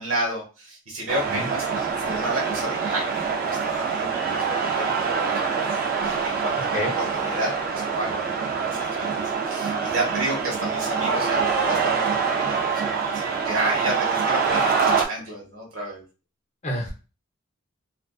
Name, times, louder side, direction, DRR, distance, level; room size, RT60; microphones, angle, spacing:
voice 1, 0.0-5.7 6.0-16.0, right 1 dB, 80° right, -2 dB, 1.2 m, -31 dB
sound 1, 1.1-15.0, right 5 dB, 45° right, 0.3 m, -25 dB
voice 2, 1.3-1.5 6.7-7.0 16.6-16.9, left 1 dB, 30° left, 0 dB, 0.6 m, -28 dB
2.4 x 2.2 x 2.3 m, 0.33 s
head